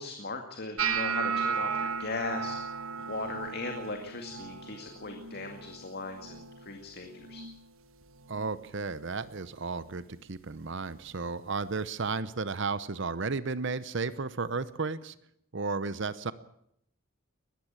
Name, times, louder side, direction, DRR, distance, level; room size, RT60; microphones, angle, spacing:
voice 1, 0.0-2.6 3.0-7.4, left 3 dB, 50° left, 4 dB, 2.2 m, -38 dB
sound 1, 0.8-6.9 7.1-7.7 8.0-8.6 9.2-9.4 11.1-11.2, right 6 dB, 75° right, 1.4 m, -35 dB
voice 2, 8.3-15.1 15.5-16.3, right 4 dB, 60° right, 15 dB, 0.8 m, -33 dB
21.0 x 14.5 x 8.9 m, 0.73 s
head